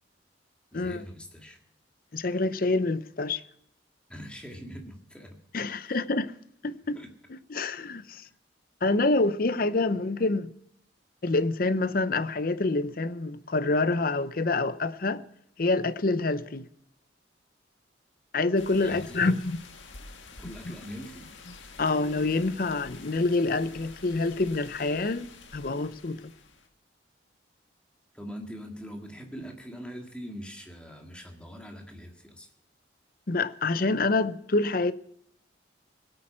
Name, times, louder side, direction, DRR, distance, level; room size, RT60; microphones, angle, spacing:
voice 1, 0.7-1.6 4.1-5.4 5.8-6.0 6.9-7.1 18.8-19.2 20.3-21.3 28.1-32.5, equal, 5° left, 1.8 m, -42 dB
voice 2, 2.1-3.4 5.5-6.3 6.6-7.0 7.5-8.2 8.8-10.5 11.2-15.2 15.6-16.7 18.3-19.6 20.7-20.8 21.8-26.2 33.3-34.9, left 3 dB, 50° left, 0.6 m, -27 dB
sound 1, 18.6-26.7, left 4 dB, 85° left, 1.7 m, -48 dB
17.5 x 8.7 x 6.2 m
head